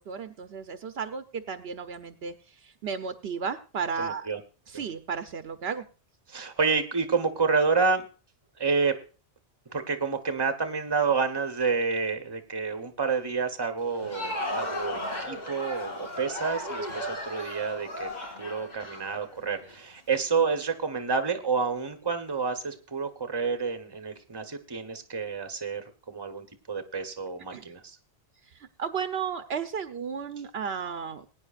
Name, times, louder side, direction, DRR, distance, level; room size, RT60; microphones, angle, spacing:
voice 1, 0.0-2.3 2.6-4.3 4.7-5.8 27.5-27.7 28.8-31.3, right 6 dB, 70° right, 9 dB, 1.0 m, -33 dB
voice 2, 4.0-4.4 4.7-4.8 6.3-8.1 8.6-8.9 9.7-18.1 18.4-28.0, right 5 dB, 25° right, 7 dB, 1.0 m, -29 dB
Crowd, 13.8-19.7, left 1 dB, 40° left, 2.5 m, -35 dB
21.0 x 9.4 x 2.4 m, 0.34 s
omnidirectional pair, 1.1 m